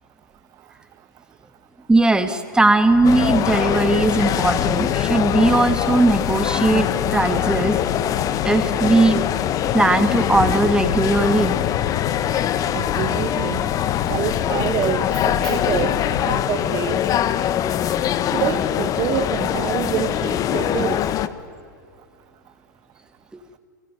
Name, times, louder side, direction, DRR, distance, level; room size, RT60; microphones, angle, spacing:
voice 1, 1.9-7.8 8.4-9.2 9.7-11.6, right 2 dB, 10° right, 8 dB, 2.5 m, -18 dB
sound 1, 2.9-16.4, left 14 dB, 55° left, 1.0 m, -30 dB
sound 2, 3.0-21.3, left 10 dB, 35° left, 1.4 m, -23 dB
voice 2, 12.7-17.0 18.3-21.0, right 12 dB, 35° right, 11 dB, 1.1 m, -27 dB
29.5 x 21.5 x 9.4 m, 2.4 s
hypercardioid pair, 100°, 10 cm